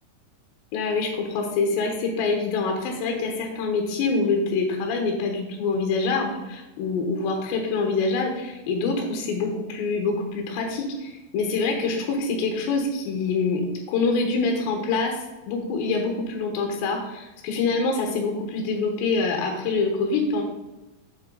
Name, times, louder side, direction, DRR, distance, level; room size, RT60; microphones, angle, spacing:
voice 1, 0.7-13.6 13.9-20.4, left 4 dB, 70° left, 2 dB, 3.1 m, -25 dB
8.0 x 7.8 x 3.9 m, 1.0 s
omnidirectional pair, 5.5 m